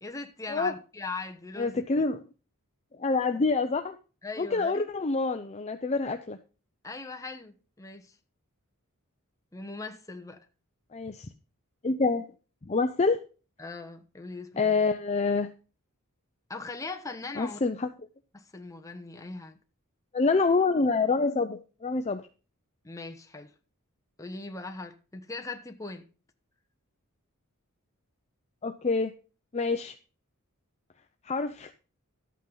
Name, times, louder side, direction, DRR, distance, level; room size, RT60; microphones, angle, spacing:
voice 1, 0.0-1.8 4.2-4.8 6.8-8.1 9.5-10.4 13.6-14.8 16.5-17.6 18.3-19.6 22.8-23.5 24.2-26.0, left 3 dB, 15° left, 1.1 m, -40 dB
voice 2, 1.6-2.2 3.0-4.0 4.4-6.4 10.9-11.3 11.8-12.2 12.7-13.2 14.6-15.5 17.4-17.9 20.1-22.2 28.6-29.1 29.5-29.9 31.3-31.7, left 3 dB, 30° left, 0.6 m, -26 dB
12.5 x 8.4 x 3.9 m
head